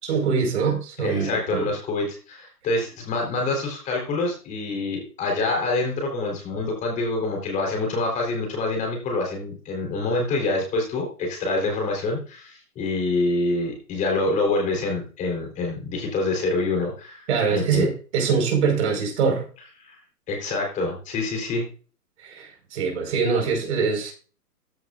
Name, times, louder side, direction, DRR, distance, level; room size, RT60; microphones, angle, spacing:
voice 1, 0.0-1.7 17.3-19.4 22.2-24.1, right 5 dB, 45° right, 5.1 m, -23 dB
voice 2, 1.0-17.9 19.8-20.0 20.3-21.6, left 2 dB, 15° left, 4.1 m, -26 dB
14.5 x 7.8 x 2.6 m
hypercardioid pair, 155°, 48 cm